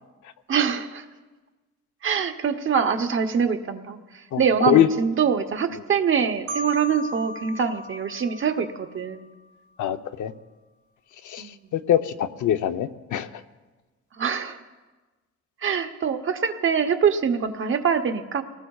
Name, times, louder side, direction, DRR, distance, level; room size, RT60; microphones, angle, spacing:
voice 1, 0.5-1.0 2.0-9.2 11.4-11.6 14.2-14.6 15.6-18.4, right 7 dB, 45° right, 7 dB, 0.9 m, -24 dB
voice 2, 4.3-4.9 9.8-10.3 11.2-11.4 11.7-13.3, left 11 dB, 85° left, 9 dB, 0.8 m, -23 dB
Marimba xylophone, 6.5-9.3, left 1 dB, 80° right, 1.2 m, -36 dB
25.5 x 19.0 x 2.4 m, 1.3 s
wide cardioid pair, 170°, 29 cm